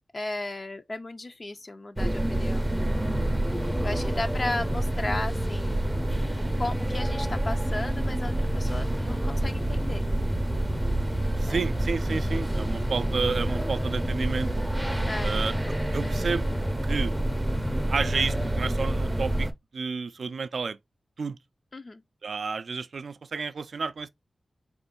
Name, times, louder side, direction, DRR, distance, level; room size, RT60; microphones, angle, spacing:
voice 1, 0.1-2.7 3.8-5.9 6.5-10.0 11.4-11.7 15.0-15.5 21.7-22.0, left 2 dB, 40° left, 0.4 m, -35 dB
sound 1, 2.0-19.5, right 1 dB, 10° right, 0.5 m, -27 dB
voice 2, 8.6-8.9 11.4-14.5 15.2-15.5 15.9-16.5 16.8-17.1 17.9-19.5 19.7-20.8 21.2-21.4 22.2-24.1, right 5 dB, 75° right, 0.3 m, -31 dB
4.3 x 2.4 x 3.7 m
wide cardioid pair, 100°, 0 cm